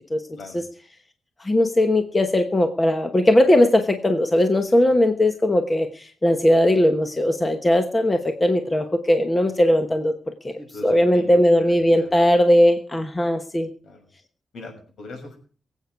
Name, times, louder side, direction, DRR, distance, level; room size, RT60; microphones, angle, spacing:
voice 1, 1.4-10.1 10.4-10.5 10.8-13.7, left 1 dB, 15° left, 6 dB, 1.1 m, -19 dB
voice 2, 10.6-12.1 13.8-14.0 14.5-15.4, left 3 dB, 70° left, 2 dB, 6.5 m, -40 dB
22.5 x 8.4 x 4.7 m, 0.41 s
wide cardioid pair, 165°, 0 cm